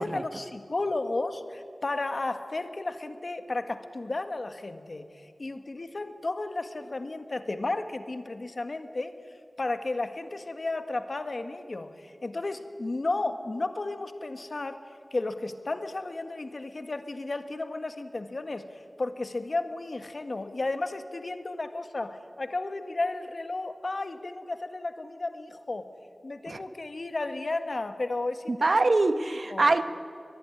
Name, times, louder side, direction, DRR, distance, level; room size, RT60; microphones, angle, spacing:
voice 1, 0.0-5.1 5.4-9.1 9.6-14.8 15.1-18.7 19.0-25.9 26.2-28.7 29.5-29.7, left 2 dB, 60° left, 1.7 m, -33 dB
voice 2, 28.5-29.8, right 3 dB, 65° right, 1.1 m, -24 dB
22.5 x 21.5 x 9.9 m
wide cardioid pair, 60°, 0 cm